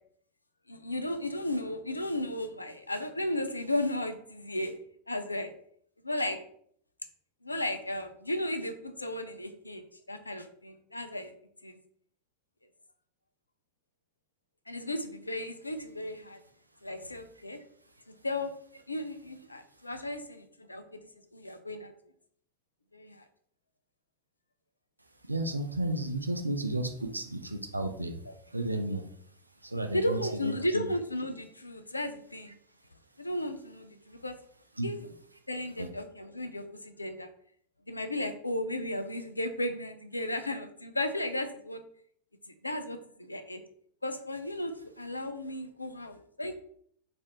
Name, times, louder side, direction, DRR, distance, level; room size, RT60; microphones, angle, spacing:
voice 1, 0.7-4.7 5.1-5.5 6.0-6.4 7.4-11.3 11.6-11.8 14.7-16.4 16.8-17.6 18.1-18.5 18.9-21.1 21.3-21.9 22.9-23.2 28.3-28.4 29.9-32.6 33.2-34.4 34.8-35.0 35.5-37.3 37.9-41.8 42.6-43.6 44.0-46.5, left 1 dB, 80° left, 8 dB, 0.3 m, -34 dB
voice 2, 25.3-28.2 28.5-29.1 29.6-30.9 34.8-34.9 35.8-35.9, right 1 dB, 85° right, 6 dB, 0.3 m, -33 dB
3.1 x 2.4 x 2.9 m, 0.63 s
figure-of-eight pair, 90°, 0 cm